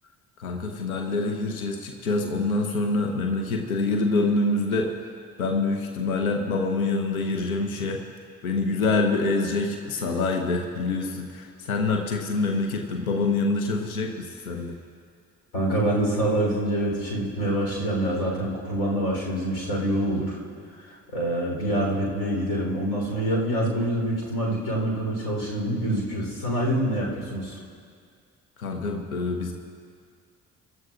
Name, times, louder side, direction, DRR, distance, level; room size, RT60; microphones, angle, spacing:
voice 1, 0.4-4.9 5.4-8.0 8.4-14.8 28.6-29.5, left 3 dB, 80° left, 4 dB, 0.8 m, -26 dB
voice 2, 15.5-20.4 20.8-27.6, right 1 dB, 65° left, -2 dB, 3.6 m, -26 dB
24.5 x 12.0 x 2.4 m, 2.1 s
figure-of-eight pair, 40°, 42 cm